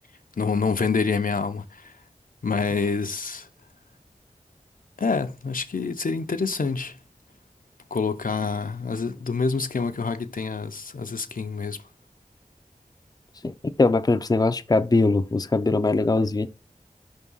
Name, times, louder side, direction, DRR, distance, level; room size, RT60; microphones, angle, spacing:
voice 1, 0.4-1.9 2.4-3.5 5.0-6.9 7.9-11.8, left 4 dB, 75° left, 0.6 m, -27 dB
voice 2, 13.8-16.5, left 3 dB, 25° left, 0.5 m, -21 dB
5.3 x 3.6 x 5.4 m
wide cardioid pair, 45°, 14 cm